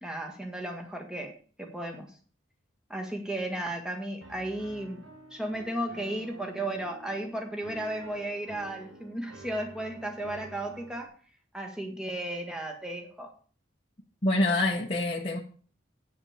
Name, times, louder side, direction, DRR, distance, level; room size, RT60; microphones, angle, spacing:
voice 1, 0.0-2.1 2.9-5.0 5.3-11.1 11.5-13.3, right 1 dB, 5° right, 1.7 m, -35 dB
Piano, 4.2-11.1, right 2 dB, 85° right, 1.7 m, -48 dB
voice 2, 14.2-15.4, left 2 dB, 30° left, 1.0 m, -26 dB
8.9 x 6.8 x 7.2 m
head